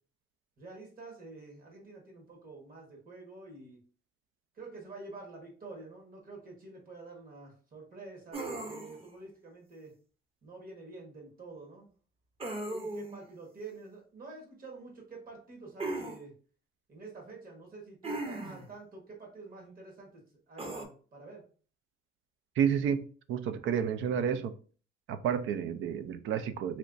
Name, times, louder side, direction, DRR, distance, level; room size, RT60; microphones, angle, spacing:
voice 1, 0.6-3.8 4.5-9.9 10.4-11.9 12.7-16.3 16.9-21.4, right 3 dB, 50° right, -1 dB, 1.4 m, -48 dB
sound 1, 8.3-9.1 12.4-13.2 15.8-16.2 18.0-18.7 20.6-20.8, right 2 dB, 30° right, 0.7 m, -37 dB
voice 2, 22.6-24.5 25.1-26.8, right 8 dB, 80° right, 11 dB, 0.4 m, -30 dB
3.2 x 3.0 x 2.5 m, 0.40 s
cardioid pair, 90°, 20 cm